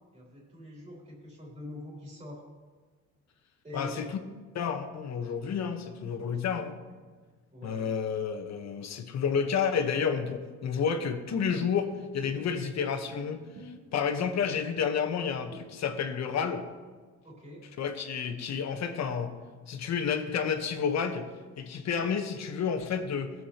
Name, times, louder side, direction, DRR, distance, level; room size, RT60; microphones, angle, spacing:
voice 1, 0.1-2.4 3.6-4.1 7.5-7.9 17.2-17.7, left 1 dB, 20° right, -3 dB, 3.1 m, -44 dB
voice 2, 3.7-4.2 4.5-6.7 7.6-16.7 17.8-19.3 19.7-21.3 21.6-23.3, left 6 dB, 65° left, 6 dB, 1.0 m, -30 dB
sound 1, 11.3-16.6, right 1 dB, 60° right, 1.1 m, -51 dB
15.5 x 7.6 x 2.9 m, 1.4 s
cardioid pair, 90°, 30 cm